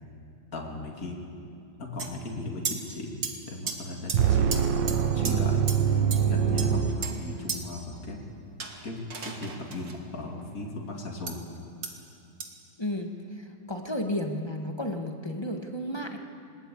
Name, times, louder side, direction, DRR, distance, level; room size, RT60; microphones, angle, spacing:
voice 1, 0.5-1.2 1.8-3.2 3.5-8.2 8.8-11.4, left 2 dB, 45° left, 0 dB, 2.9 m, -37 dB
sound 1, 2.0-2.1 2.6-2.8 3.2-3.3 3.7-3.8 4.1-4.2 4.5-4.6 4.9-5.0 5.2-5.3 5.7-5.8 6.1-6.2 6.6-7.1 7.5-7.6 8.6-10.0 11.3-11.4 11.8-11.9 12.4-12.5, right 5 dB, 50° right, 2.2 m, -33 dB
sound 2, 4.1-7.6, right 8 dB, 70° right, 1.5 m, -24 dB
voice 2, 12.8-16.2, left 1 dB, 15° left, 3 dB, 1.2 m, -33 dB
20.5 x 20.5 x 8.5 m, 2.6 s
omnidirectional pair, 2.2 m